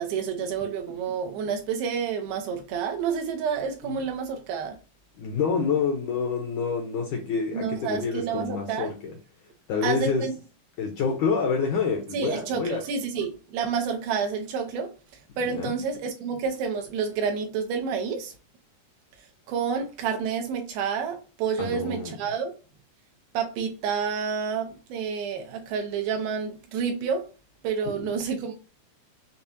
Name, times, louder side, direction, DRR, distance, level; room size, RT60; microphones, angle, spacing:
voice 1, 0.0-4.8 7.5-8.9 9.8-10.3 12.1-14.9 15.4-18.3 19.5-22.5 23.3-27.3 27.6-28.5, right 6 dB, 85° right, 2.6 m, -29 dB
voice 2, 5.2-9.1 9.7-10.3 10.8-12.8 15.4-15.7 21.6-22.1 27.8-28.1, left 5 dB, 75° left, 1.8 m, -27 dB
6.9 x 2.4 x 2.7 m
omnidirectional pair, 4.4 m